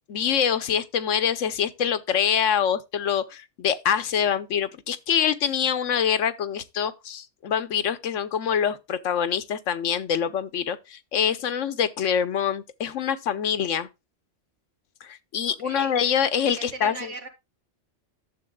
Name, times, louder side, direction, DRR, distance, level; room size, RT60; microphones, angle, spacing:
voice 1, 0.1-13.9 15.0-17.1, left 8 dB, 85° left, 1.2 m, -25 dB
voice 2, 15.5-16.0 16.6-17.3, right 3 dB, 75° right, 2.3 m, -38 dB
12.0 x 7.5 x 2.3 m
omnidirectional pair, 1.3 m